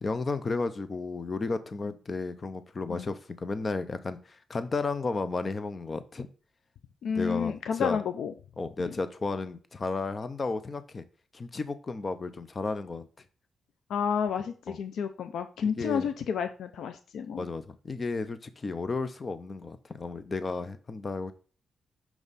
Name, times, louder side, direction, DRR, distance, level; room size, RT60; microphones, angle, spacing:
voice 1, 0.0-6.3 7.2-8.0 8.6-11.0 11.3-13.1 14.7-14.8 15.6-16.1 17.4-21.3, left 3 dB, 30° left, 12 dB, 0.5 m, -33 dB
voice 2, 7.0-8.3 8.8-9.0 13.9-17.5, left 7 dB, 80° left, 9 dB, 0.5 m, -31 dB
6.0 x 5.4 x 4.0 m, 0.39 s
wide cardioid pair, 155°, 0 cm